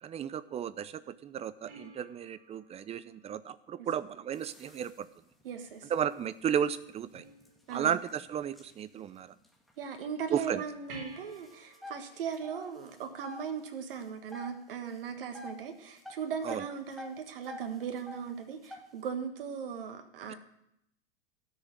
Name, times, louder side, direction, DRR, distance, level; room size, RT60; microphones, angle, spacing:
voice 1, 0.0-5.1 5.9-7.2 7.7-9.3 10.3-10.6 16.4-16.6, right 9 dB, 20° right, 16 dB, 0.6 m, -34 dB
sound 1, 1.7-4.3 7.1-8.1 10.9-13.8 16.9-17.0, right 2 dB, 45° right, 4.3 m, -53 dB
sound 2, 4.3-10.5 10.8-10.9 11.2-13.5 13.8-14.5 14.8-15.6 16.0-18.3 18.6-19.0, left 2 dB, ahead, 1.7 m, -48 dB
voice 2, 5.4-5.9 7.7-8.0 9.8-20.4, right 7 dB, 65° right, 6 dB, 1.6 m, -38 dB
13.0 x 6.7 x 9.0 m, 0.77 s
hypercardioid pair, 100°, 30 cm